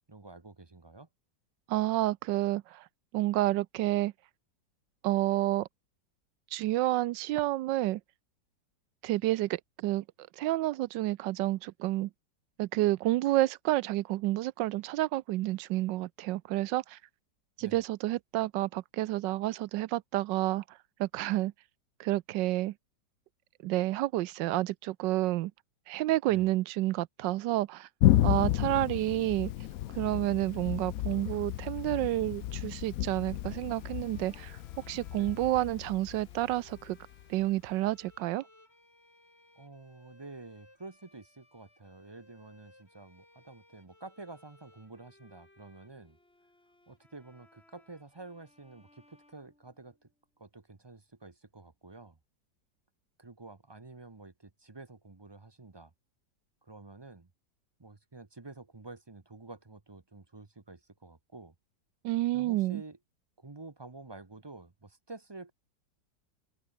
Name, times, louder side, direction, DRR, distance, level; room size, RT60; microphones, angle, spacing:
voice 1, 0.1-1.1 17.6-17.8 26.3-26.5 35.2-35.4 39.6-46.2 46.9-50.1 50.4-52.2 53.2-55.9 56.6-57.3 57.8-61.5 62.3-63.0 63.4-65.5, right 3 dB, 25° right, 0.6 m, -49 dB
voice 2, 1.7-2.8 3.1-4.1 5.0-5.7 6.5-8.0 9.0-10.0 10.4-12.1 12.6-17.0 17.6-20.6 21.0-21.5 22.0-22.7 23.6-25.5 25.9-27.9 28.2-29.5 30.0-34.6 34.9-37.0 37.3-38.4 62.0-62.8, right 16 dB, 75° right, 1.2 m, -29 dB
Thunder, 28.0-37.4, left 13 dB, 70° left, 0.8 m, -32 dB
sound 1, 33.3-50.2, left 1 dB, 30° left, 6.5 m, -63 dB
open air
omnidirectional pair, 2.0 m